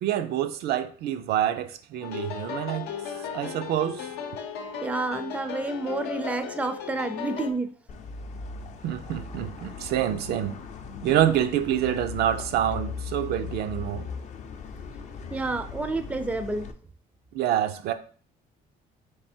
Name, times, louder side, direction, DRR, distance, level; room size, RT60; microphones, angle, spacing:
voice 1, 0.0-2.9 3.3-4.1 8.8-10.5 11.0-14.0 17.3-17.9, right 11 dB, 70° right, 0.5 m, -26 dB
sound 1, 2.0-7.5, left 7 dB, 80° left, 0.7 m, -36 dB
voice 2, 4.8-7.7 15.3-16.7, right 2 dB, 10° right, 0.4 m, -29 dB
sound 2, 7.9-16.7, left 5 dB, 45° left, 0.5 m, -38 dB
3.4 x 3.3 x 4.3 m
cardioid pair, 110°, 17 cm